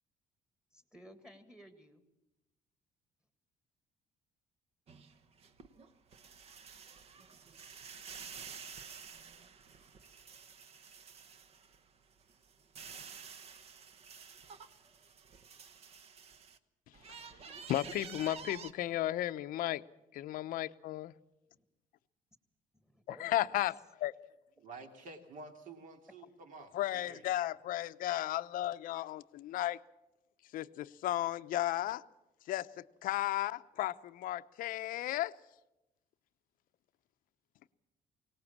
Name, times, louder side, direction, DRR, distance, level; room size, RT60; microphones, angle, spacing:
voice 1, 0.7-2.0 21.6-21.7 22.7-23.5, equal, 5° right, 1.8 m, -56 dB
sound 1, 4.9-11.8 12.2-16.6 16.9-18.7, right 6 dB, 45° right, 1.1 m, -50 dB
voice 2, 17.7-19.8 20.1-21.1 23.1-24.1 26.7-29.8 30.5-32.0 32.5-35.3, left 14 dB, 70° left, 0.7 m, -34 dB
voice 3, 24.6-27.2, right 3 dB, 60° right, 3.0 m, -50 dB
23.0 x 18.5 x 7.3 m
cardioid pair, 150°, 15 cm